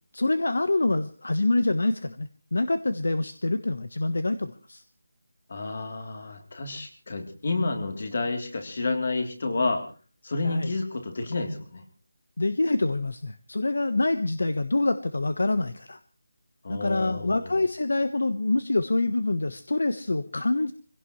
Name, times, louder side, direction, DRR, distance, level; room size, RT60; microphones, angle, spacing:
voice 1, 0.1-4.8 10.4-10.7 12.4-16.0 16.7-20.7, left 2 dB, 70° left, 11 dB, 1.2 m, -26 dB
voice 2, 5.5-9.8 10.2-11.8 16.6-17.6, left 3 dB, 35° left, 4 dB, 3.4 m, -30 dB
25.5 x 17.0 x 3.2 m, 0.40 s
figure-of-eight pair, 175°, 0 cm